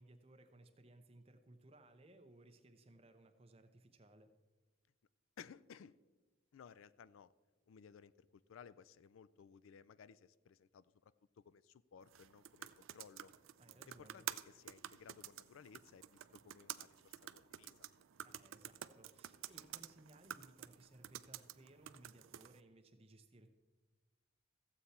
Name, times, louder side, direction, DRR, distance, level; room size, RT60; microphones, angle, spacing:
voice 1, 0.0-4.3 13.6-14.3 18.2-23.5, right 1 dB, 30° right, 7 dB, 0.8 m, -62 dB
voice 2, 5.4-6.0 6.5-7.3 7.7-13.3 13.9-17.9, left 7 dB, 80° left, 18 dB, 0.4 m, -59 dB
sound 1, 12.0-22.6, right 11 dB, 80° right, 0.4 m, -51 dB
14.5 x 8.0 x 4.3 m, 1.3 s
head